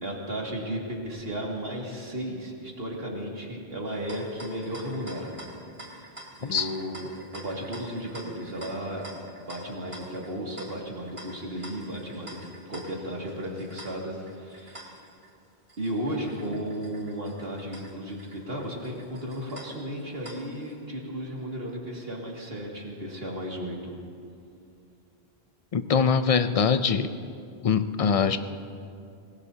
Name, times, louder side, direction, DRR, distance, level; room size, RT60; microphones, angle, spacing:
voice 1, 0.0-5.3 5.9-6.0 6.4-9.2 9.4-12.4 12.7-14.9 15.8-24.0, equal, 65° right, -2 dB, 2.5 m, -34 dB
sound 1, 3.8-20.7, right 1 dB, 30° right, 2.0 m, -47 dB
voice 2, 25.7-27.1 27.6-28.4, left 6 dB, 40° left, 10 dB, 0.6 m, -23 dB
25.0 x 19.0 x 2.8 m, 2.4 s
omnidirectional pair, 1.1 m